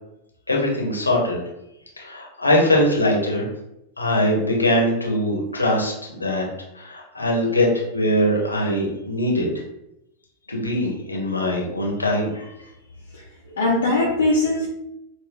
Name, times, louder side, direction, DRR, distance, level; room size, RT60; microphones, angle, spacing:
voice 1, 0.5-1.4 2.0-3.5 4.0-6.5 6.7-9.5 10.5-12.5, left 1 dB, 85° left, -2 dB, 1.0 m, -22 dB
voice 2, 13.1-14.7, left 2 dB, 70° left, -4 dB, 0.7 m, -21 dB
4.3 x 2.3 x 3.4 m, 0.84 s
figure-of-eight pair, 90°, 0 cm